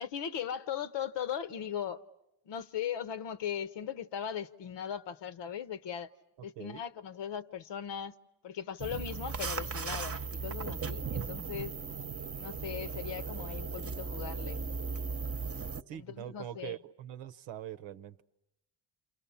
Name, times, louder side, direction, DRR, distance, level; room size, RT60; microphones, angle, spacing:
voice 1, 0.0-2.0 2.4-6.1 6.4-8.1 8.4-11.7 12.4-14.6 15.9-16.8, left 9 dB, 75° left, 1.0 m, -38 dB
sound 1, 8.8-15.8, right 5 dB, 30° right, 0.9 m, -37 dB
voice 2, 15.9-18.2, right 11 dB, 90° right, 0.9 m, -43 dB
29.5 x 27.5 x 7.1 m
cardioid pair, 65°, 43 cm